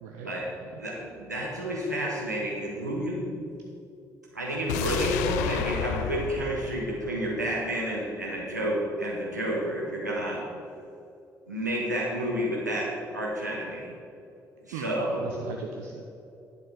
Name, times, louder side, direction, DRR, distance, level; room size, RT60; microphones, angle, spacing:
voice 1, 0.0-0.3 0.7-0.8 14.7-16.0, right 5 dB, 70° right, 2 dB, 0.6 m, -38 dB
voice 2, 0.8-3.3 4.3-10.4 11.5-13.9 14.6-15.2, right 1 dB, 90° right, -4 dB, 1.3 m, -30 dB
sound 1, 4.7-7.8 8.1-8.2, left 8 dB, 70° left, 0.4 m, -32 dB
10.5 x 6.7 x 5.0 m, 2.7 s
figure-of-eight pair, 40°, 9 cm